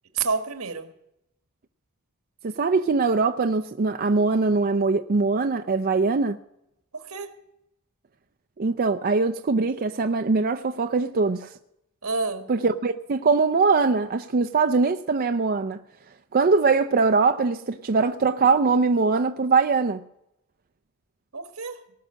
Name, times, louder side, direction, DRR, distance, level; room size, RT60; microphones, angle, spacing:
voice 1, 0.1-0.9 6.9-7.3 12.0-12.5 21.3-21.8, right 4 dB, 85° right, 1.6 m, -29 dB
voice 2, 2.4-6.4 8.6-11.5 12.5-15.8 16.3-20.0, right 4 dB, 45° right, 0.5 m, -22 dB
19.0 x 6.3 x 8.7 m
head